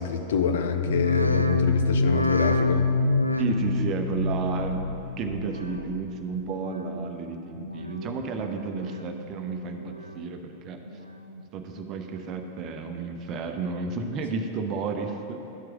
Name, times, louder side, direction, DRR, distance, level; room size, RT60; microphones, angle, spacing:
voice 1, 0.0-2.9, left 7 dB, 60° left, 7 dB, 0.6 m, -26 dB
sound 1, 0.8-6.1 6.5-7.1 7.5-8.2 8.6-9.3 9.7-10.4 10.9-11.4 12.0-12.1, left 2 dB, 90° right, 0.4 m, -27 dB
voice 2, 3.4-10.8 11.5-15.4, right 4 dB, 35° right, 5 dB, 0.7 m, -32 dB
12.0 x 4.6 x 6.1 m, 2.9 s
figure-of-eight pair, 90°, 0 cm